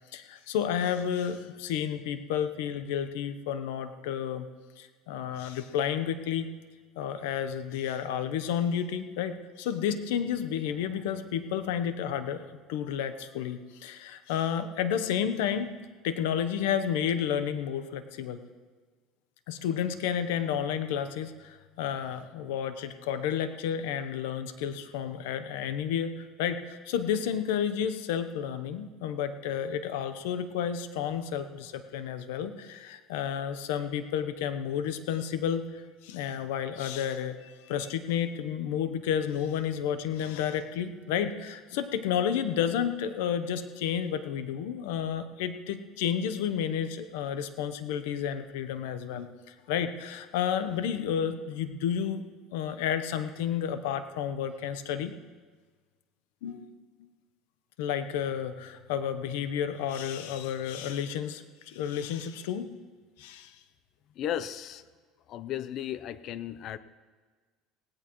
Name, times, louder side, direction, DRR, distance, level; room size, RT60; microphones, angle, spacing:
voice 1, 0.1-4.5 4.8-6.5 7.0-12.4 12.7-15.7 16.0-18.4 19.5-52.2 52.5-55.1 56.4-56.8 57.8-62.7 63.2-63.5, left 8 dB, 85° left, 11 dB, 0.9 m, -31 dB
voice 2, 64.2-64.8 65.3-66.8, left 11 dB, 50° left, 15 dB, 0.6 m, -35 dB
17.5 x 16.5 x 3.1 m, 1.4 s
supercardioid pair, 115°, 0 cm